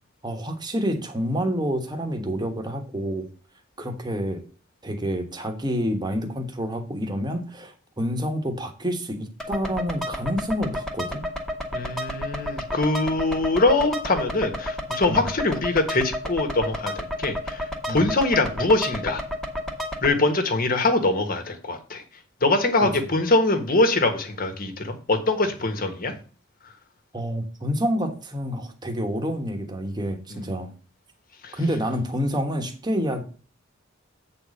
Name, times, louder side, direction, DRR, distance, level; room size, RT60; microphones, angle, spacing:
voice 1, 0.2-3.3 3.8-4.4 4.8-11.3 15.1-15.2 17.9-18.0 22.8-22.9 27.1-30.7 31.5-33.2, equal, 20° right, 4 dB, 1.3 m, -28 dB
sound 1, 9.4-20.1, left 1 dB, 5° left, 1.3 m, -31 dB
voice 2, 11.7-19.2 20.0-22.0 22.4-26.1 30.3-30.5 31.4-31.5, left 2 dB, 45° left, 6 dB, 1.5 m, -23 dB
8.2 x 4.2 x 6.4 m, 0.37 s
head